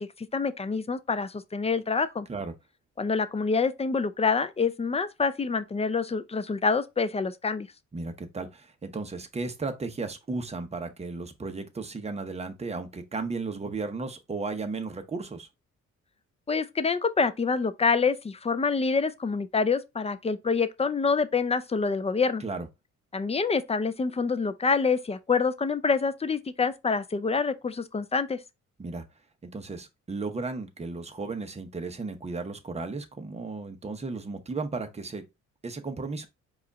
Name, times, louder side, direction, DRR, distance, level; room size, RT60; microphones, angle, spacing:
voice 1, 0.0-2.3 3.0-7.7 16.5-22.4 23.1-28.4, left 4 dB, 20° left, 0.4 m, -26 dB
voice 2, 7.9-15.5 22.4-22.7 28.8-29.0 29.4-35.2 35.6-36.3, right 3 dB, 20° right, 0.9 m, -34 dB
4.8 x 2.5 x 4.0 m
cardioid pair, 90°, 30 cm